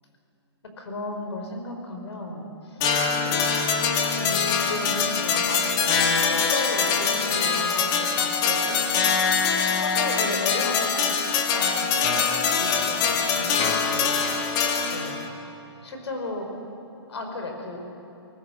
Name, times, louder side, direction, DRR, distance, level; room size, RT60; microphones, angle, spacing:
voice 1, 0.8-3.4 4.1-8.9 9.1-11.2 11.5-12.0 12.5-14.2 14.8-15.2 15.8-16.5 17.1-17.8, left 2 dB, 75° left, 4 dB, 5.1 m, -35 dB
sound 1, 2.8-15.3, left 5 dB, 25° left, 1.9 m, -23 dB
20.0 x 19.5 x 8.2 m, 2.9 s
hypercardioid pair, 145°, 14 cm